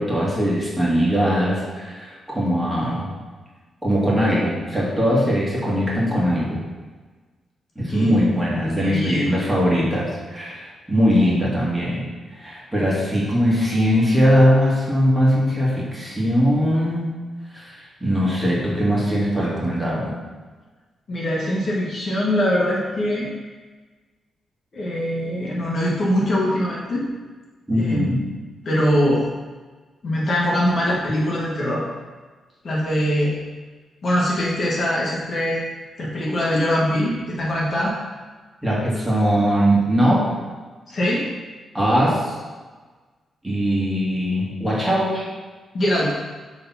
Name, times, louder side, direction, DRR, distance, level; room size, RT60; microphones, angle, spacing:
voice 1, 0.0-3.1 3.8-6.6 7.8-12.1 12.4-17.1 17.5-20.1 27.7-28.2 38.6-40.4 41.7-42.3 43.4-45.3, equal, 10° right, -6 dB, 1.9 m, -20 dB
voice 2, 8.8-9.4 21.1-23.3 24.7-27.0 27.8-28.1 28.6-29.3 30.0-31.8 32.6-33.4 34.0-35.6 36.0-37.9 40.9-41.2 45.7-46.1, equal, 45° left, -4 dB, 1.5 m, -22 dB
6.8 x 3.5 x 5.7 m, 1.4 s
cardioid pair, 130°, 0 cm